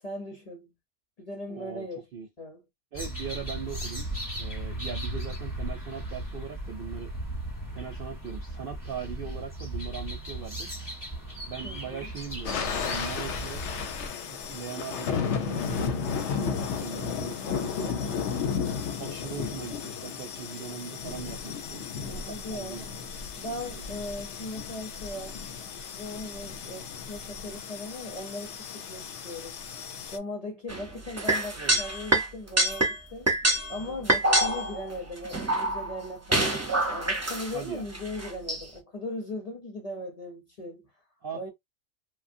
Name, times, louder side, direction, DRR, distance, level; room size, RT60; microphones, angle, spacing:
voice 1, 0.0-0.7 1.2-2.1 2.4-2.6 11.6-12.1 22.2-22.8 23.4-25.4 26.0-29.6 30.1-33.3 33.7-36.6 36.9-40.9 41.3-41.5, left 1 dB, 35° left, 0.6 m, -38 dB
voice 2, 1.5-1.9 2.1-2.3 2.9-4.1 4.3-7.1 7.7-10.7 11.5-13.7 14.2-18.3 19.0-23.0 23.7-23.8 31.6-31.8 37.5-37.9 41.2-41.5, right 6 dB, 60° right, 0.6 m, -40 dB
sound 1, 2.9-14.1, right 1 dB, 15° left, 0.9 m, -36 dB
sound 2, 12.4-30.2, left 6 dB, 70° left, 0.8 m, -34 dB
sound 3, 30.7-32.3 32.6-33.0 33.3-34.9 35.3-36.1 36.3-37.6 37.9-38.6, right 1 dB, 20° right, 0.5 m, -26 dB
3.1 x 2.2 x 2.6 m
omnidirectional pair, 1.3 m